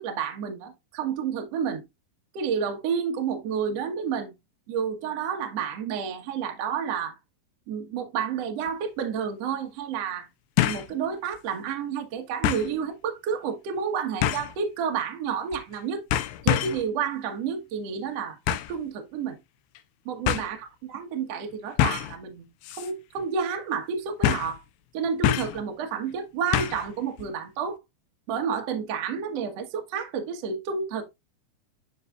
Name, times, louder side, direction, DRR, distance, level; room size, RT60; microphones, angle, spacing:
voice 1, 0.0-1.8 2.3-4.3 4.7-7.2 7.7-10.3 10.6-16.0 16.4-19.4 20.0-22.4 22.7-24.6 24.9-27.8 28.3-31.0, right 7 dB, 75° right, 1.4 m, -30 dB
sound 1, 8.7-8.8 10.6-10.9 11.3-11.4 12.4-12.7 14.2-14.6 15.5-15.8 16.1-16.9 18.5-18.8 19.8-19.9 20.3-20.5 21.8-22.2 22.6-22.9 23.2-23.3 24.2-24.6 25.2-25.6 26.5-26.9 27.2-27.3, left 12 dB, 85° left, 2.8 m, -25 dB
12.0 x 4.6 x 2.5 m
omnidirectional pair, 5.2 m